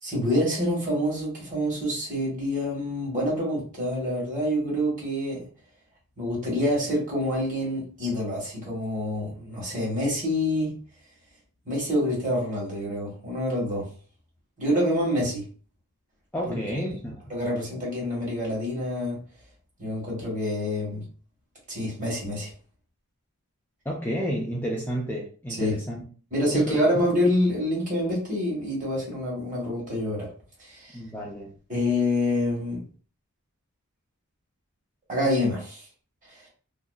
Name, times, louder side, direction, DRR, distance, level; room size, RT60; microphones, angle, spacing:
voice 1, 0.0-5.4 6.2-10.7 11.7-13.9 14.6-15.5 16.5-16.6 17.3-19.2 19.8-21.0 21.7-22.5 25.6-25.8 26.3-30.3 30.6-31.0 31.7-32.8 35.1-35.8, left 1 dB, 35° right, -4 dB, 1.4 m, -27 dB
voice 2, 16.3-17.2 23.9-26.0 26.5-26.8 30.9-31.5, equal, 10° left, -4 dB, 0.4 m, -31 dB
2.7 x 2.4 x 2.3 m, 0.40 s
head